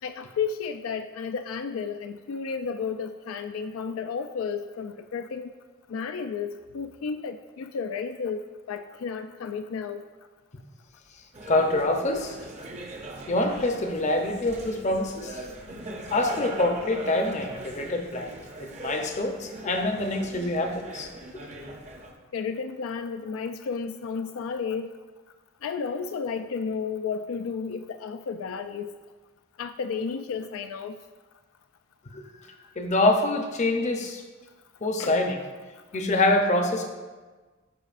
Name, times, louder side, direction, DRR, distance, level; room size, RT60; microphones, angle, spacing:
voice 1, 0.0-5.5 5.9-10.0 22.3-24.9 25.6-29.0 29.6-31.0 35.0-35.2 35.9-36.0, left 5 dB, 75° left, 8 dB, 0.3 m, -32 dB
sound 1, 11.3-22.1, right 1 dB, 35° right, 0.7 m, -41 dB
voice 2, 11.5-12.4 13.3-15.4 16.1-18.3 18.6-21.1 32.1-32.2 32.8-34.2 34.8-35.4 35.9-36.9, left 2 dB, 35° left, 4 dB, 0.6 m, -25 dB
12.5 x 4.9 x 2.5 m, 1.3 s
head